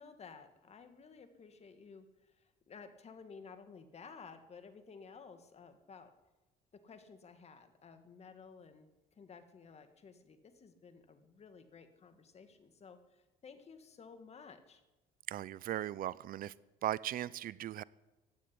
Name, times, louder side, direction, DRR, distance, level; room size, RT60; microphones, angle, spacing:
voice 1, 0.0-6.1 6.7-14.8, left 5 dB, 40° left, 9 dB, 2.0 m, -55 dB
voice 2, 15.3-16.5 16.8-17.8, right 12 dB, 60° right, 21 dB, 0.5 m, -38 dB
15.5 x 9.3 x 10.0 m, 1.1 s
cardioid pair, 110°, 17 cm